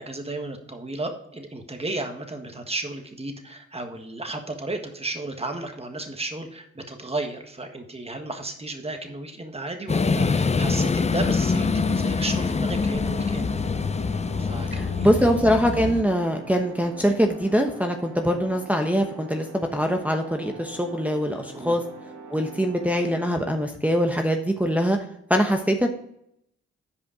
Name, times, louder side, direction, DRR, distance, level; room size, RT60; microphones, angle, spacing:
voice 1, 0.0-13.5 14.4-15.1 21.5-21.8, right 2 dB, 20° right, 5 dB, 1.5 m, -33 dB
sound 1, 9.9-16.0, left 4 dB, 25° left, 0.5 m, -24 dB
sound 2, 11.6-23.5, right 4 dB, 75° right, 2.5 m, -43 dB
voice 2, 15.0-21.8 22.3-25.0 25.3-25.9, equal, 5° right, 3 dB, 1.0 m, -23 dB
8.6 x 5.1 x 4.9 m, 0.73 s
cardioid pair, 55°, 29 cm